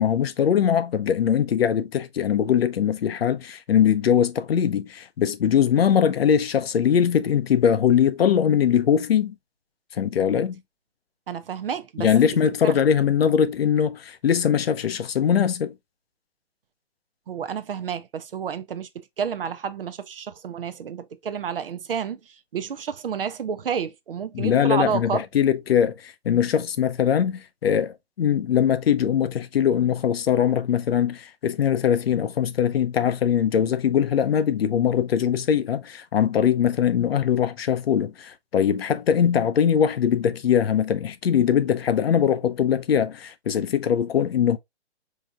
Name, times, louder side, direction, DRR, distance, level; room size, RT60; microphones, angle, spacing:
voice 1, 0.0-9.4 9.9-10.6 12.0-15.7 24.3-44.6, left 8 dB, 60° left, 0.5 m, -21 dB
voice 2, 11.3-12.1 12.6-12.7 17.3-18.9 19.2-22.2 22.5-25.2, right 7 dB, 55° right, 0.5 m, -30 dB
4.7 x 2.7 x 2.4 m
hypercardioid pair, 180°, 34 cm